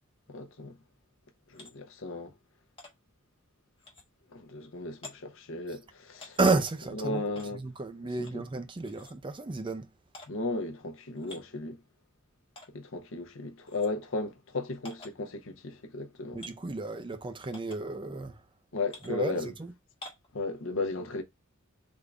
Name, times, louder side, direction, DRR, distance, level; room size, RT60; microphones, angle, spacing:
voice 1, 0.3-0.8 1.5-2.3 4.3-6.4 7.0-7.6 10.3-11.8 12.7-16.4 18.7-19.5 20.3-21.2, left 2 dB, 70° left, 0.8 m, -35 dB
sound 1, 1.5-1.8 2.8-2.9 3.8-4.1 5.0-5.2 6.1-6.4 7.4-7.5 8.2-8.4 8.8-9.1 10.1-10.3 11.2-11.4 12.6-12.7 13.7-13.9 14.9-15.1 16.4-16.6 17.5-17.8 18.9-19.1 20.0-20.3, left 2 dB, 25° left, 1.3 m, -47 dB
voice 2, 6.4-7.2 7.5-9.9 16.3-18.4 19.1-19.7, right 3 dB, 25° right, 0.5 m, -31 dB
3.6 x 2.5 x 3.3 m
head